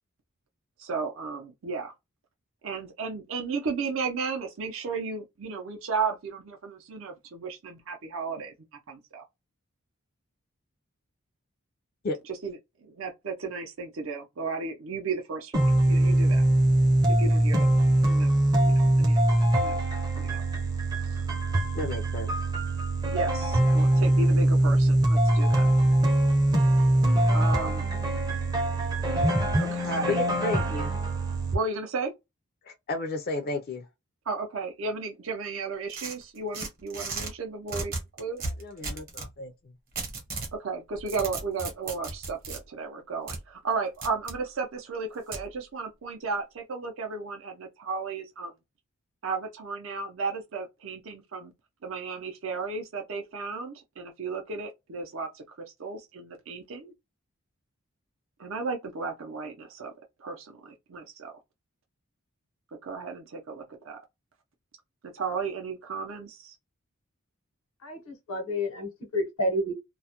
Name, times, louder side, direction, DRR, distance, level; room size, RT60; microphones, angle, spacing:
voice 1, 0.8-1.9 2.6-8.5 8.9-9.2 12.3-16.4 17.1-17.7 18.0-19.2 19.5-19.8 20.1-20.4 21.0-21.4 23.1-25.7 27.3-27.9 29.6-30.2 31.5-32.1 34.3-38.4 40.5-48.5 49.2-51.5 51.8-55.4 55.8-56.9 58.4-59.9 60.2-61.4 62.8-64.0 65.0-66.5, right 4 dB, 65° right, 0.5 m, -34 dB
sound 1, 15.5-31.5, right 1 dB, 20° right, 0.5 m, -23 dB
voice 2, 21.8-22.3 29.8-30.9 32.6-33.9 38.4-39.5, left 2 dB, 45° left, 0.3 m, -33 dB
sound 2, 35.9-37.3 37.7-39.3 40.0-40.5 40.9-42.6 43.3-43.4 44.0-44.4 45.3-45.5, right 3 dB, 40° right, 0.9 m, -35 dB
voice 3, 67.8-69.7, left 1 dB, 85° left, 0.9 m, -30 dB
2.2 x 2.0 x 2.7 m
head